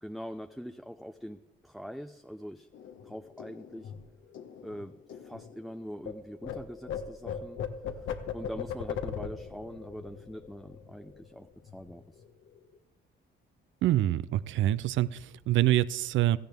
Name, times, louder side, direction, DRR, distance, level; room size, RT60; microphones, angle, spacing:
voice 1, 0.0-2.7 3.0-3.9 4.6-7.6 8.3-12.2, equal, ahead, 8 dB, 0.4 m, -43 dB
sound 1, 2.7-6.1 6.4-11.4 11.7-11.9 12.2-12.8, left 8 dB, 80° left, 1.2 m, -39 dB
voice 2, 13.8-16.4, right 13 dB, 75° right, 18 dB, 0.5 m, -26 dB
16.5 x 13.5 x 3.5 m, 0.98 s
cardioid pair, 90°, 20 cm